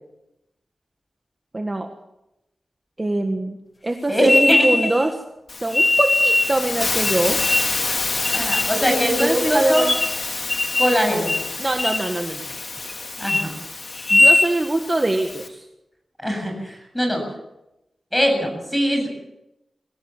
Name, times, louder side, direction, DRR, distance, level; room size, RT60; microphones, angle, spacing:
voice 1, 1.5-1.9 3.0-3.6 3.8-5.2 5.5-7.4 8.9-10.0 11.6-12.5 14.1-15.7, right 2 dB, 20° right, 4 dB, 1.6 m, -23 dB
voice 2, 4.1-4.7 8.3-9.9 10.8-11.3 13.2-13.5 16.2-17.2 18.1-19.1, equal, 5° left, 3 dB, 7.9 m, -21 dB
sound 1, 4.2-5.1 5.7-6.5 7.0-7.8 8.2-8.7 9.2-9.3 9.7-10.2 10.5-11.0 11.3-11.5 11.8-12.1 12.5-12.9 13.2-13.4 13.9-14.5, left 2 dB, 25° left, 1.5 m, -20 dB
Hiss, 5.5-15.5, left 3 dB, 45° left, 2.6 m, -28 dB
24.0 x 17.0 x 7.4 m, 0.90 s
wide cardioid pair, 135°, 0 cm